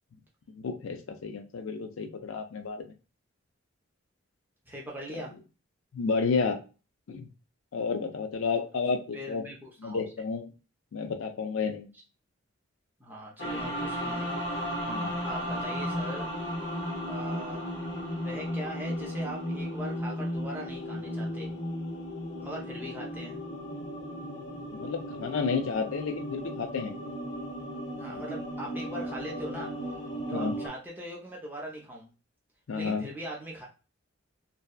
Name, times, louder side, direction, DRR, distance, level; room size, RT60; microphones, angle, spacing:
voice 1, 0.5-2.9 5.9-6.6 7.1-7.3 7.7-9.4 9.8-10.5 10.9-11.9 14.9-15.1 24.7-26.9 30.3-30.5 32.7-33.1, left 5 dB, 75° left, 6 dB, 0.4 m, -31 dB
voice 2, 4.7-5.3 9.1-10.0 13.0-14.4 15.2-16.3 17.1-17.7 18.2-21.5 22.4-23.4 28.0-30.0 30.3-32.1 32.8-33.7, equal, 10° right, -3 dB, 0.6 m, -40 dB
sound 1, 13.4-30.7, equal, 55° left, 0.8 m, -35 dB
2.7 x 2.2 x 2.2 m, 0.33 s
head